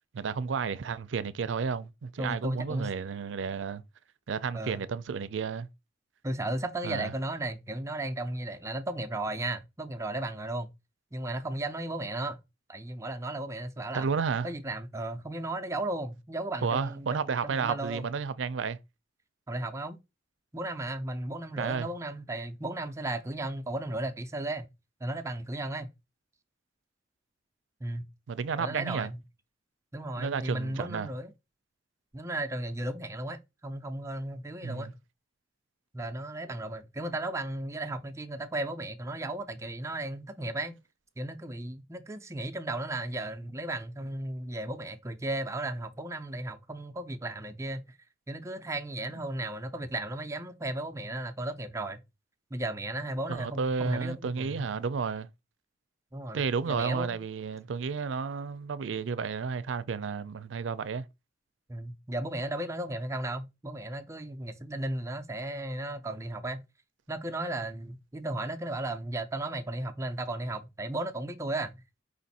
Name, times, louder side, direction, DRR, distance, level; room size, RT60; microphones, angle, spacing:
voice 1, 0.1-3.8 4.3-5.7 6.8-7.1 13.9-14.5 16.6-18.8 21.6-21.9 28.3-29.1 30.2-31.1 34.6-34.9 53.3-55.3 56.3-61.1, right 5 dB, 85° right, 0.4 m, -32 dB
voice 2, 2.2-2.9 4.5-4.8 6.2-10.7 11.1-12.4 12.7-14.1 14.4-18.1 19.5-20.0 20.5-24.7 25.0-25.9 27.8-28.0 28.6-29.2 29.9-31.3 32.1-35.0 35.9-40.7 41.2-47.8 48.3-52.0 52.5-54.7 56.1-57.2 61.7-66.6 67.1-71.8, right 1 dB, 15° right, 0.5 m, -35 dB
5.1 x 2.5 x 4.1 m
head